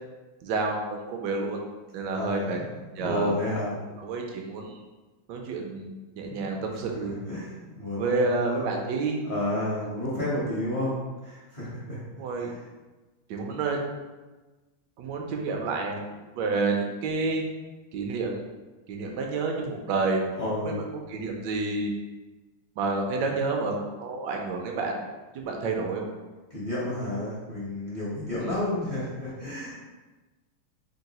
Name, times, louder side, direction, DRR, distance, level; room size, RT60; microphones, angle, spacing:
voice 1, 0.4-1.6 1.9-2.6 3.0-3.3 4.0-4.8 5.3-7.2 7.9-9.2 12.2-12.5 13.3-13.8 15.0-16.1 16.4-17.4 17.9-18.4 18.9-20.2 20.6-20.8 21.1-21.9 22.8-25.0 25.3-26.1 28.4-28.7, right 3 dB, 75° right, 1 dB, 1.0 m, -29 dB
voice 2, 2.1-2.6 3.0-3.7 6.3-6.4 6.9-7.0 7.3-8.7 9.2-11.0 11.2-12.0 12.4-12.6 20.4-20.8 26.5-29.8, left 1 dB, 45° left, -8 dB, 0.7 m, -31 dB
3.7 x 2.3 x 4.0 m, 1.2 s
omnidirectional pair, 2.4 m